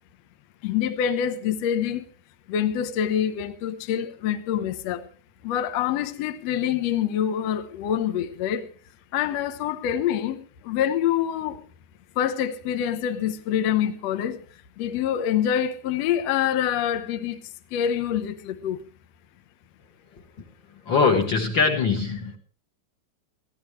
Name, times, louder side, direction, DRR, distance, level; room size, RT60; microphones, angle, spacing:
voice 1, 0.6-2.0 2.5-5.1 5.4-8.7 9.1-11.6 12.2-14.4 14.8-17.4 17.7-18.8, left 9 dB, 80° left, 1.5 m, -26 dB
voice 2, 20.7-22.4, left 4 dB, 55° left, 1.3 m, -22 dB
23.0 x 15.0 x 3.2 m
omnidirectional pair, 4.6 m